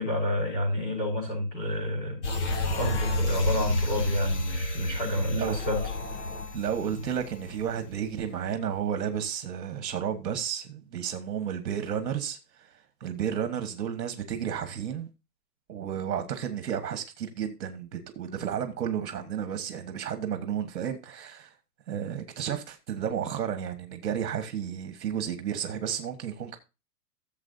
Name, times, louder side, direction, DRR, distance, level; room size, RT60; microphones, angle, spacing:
voice 1, 0.0-5.8 6.8-6.9, left 1 dB, 20° left, 6.2 m, -30 dB
sound 1, 2.2-7.8 8.2-8.3, left 1 dB, 45° left, 1.7 m, -30 dB
voice 2, 6.5-12.7 13.0-15.1 15.7-21.5 21.9-26.6, right 8 dB, 65° right, 1.6 m, -32 dB
15.5 x 7.4 x 2.7 m
hypercardioid pair, 180°, 49 cm